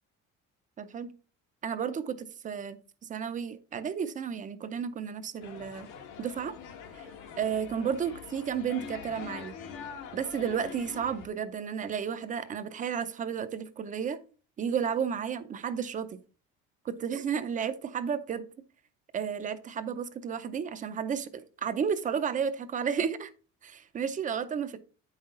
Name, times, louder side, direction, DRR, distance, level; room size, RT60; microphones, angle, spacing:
voice 1, 0.8-1.1 1.6-2.8 3.1-5.9 6.2-6.6 6.9-7.1 7.4-9.6 10.1-14.2 14.6-16.1 16.8-18.4 19.1-23.3 23.6-24.8, right 7 dB, 25° right, 0.5 m, -32 dB
sound 1, 5.4-11.3, left 7 dB, 80° left, 1.5 m, -44 dB
8.7 x 5.6 x 3.7 m
cardioid pair, 180°, 31 cm